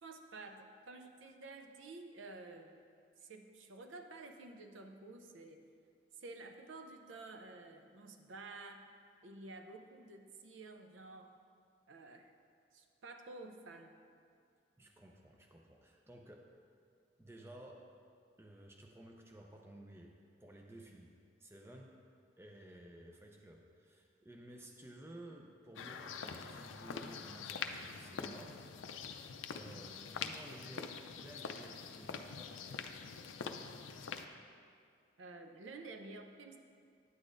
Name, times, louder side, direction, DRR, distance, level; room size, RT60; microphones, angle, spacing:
voice 1, 0.0-2.8 3.2-5.6 6.1-8.9 9.2-11.3 11.9-12.3 12.7-13.9 35.2-36.6, right 3 dB, 80° right, 5 dB, 0.5 m, -51 dB
voice 2, 14.8-16.4 17.2-17.8 18.4-20.1 20.4-21.1 21.4-21.9 22.4-28.6 29.5-32.9, right 1 dB, 15° right, 1 dB, 0.5 m, -54 dB
sound 1, 25.8-34.3, left 6 dB, 80° left, 0.4 m, -45 dB
9.4 x 8.1 x 2.5 m, 2.2 s
head